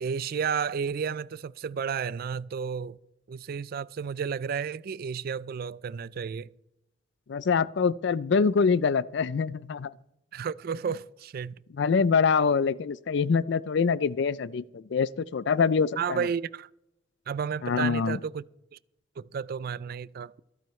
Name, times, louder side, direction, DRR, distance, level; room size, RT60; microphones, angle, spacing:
voice 1, 0.0-3.0 3.3-6.5 10.3-11.6 16.0-16.7 17.3-18.4 18.7-18.8 19.2-20.3, right 6 dB, 50° right, 0.3 m, -32 dB
voice 2, 7.3-9.9 11.8-16.3 17.6-18.2, left 5 dB, 65° left, 0.4 m, -25 dB
26.0 x 9.1 x 3.2 m
head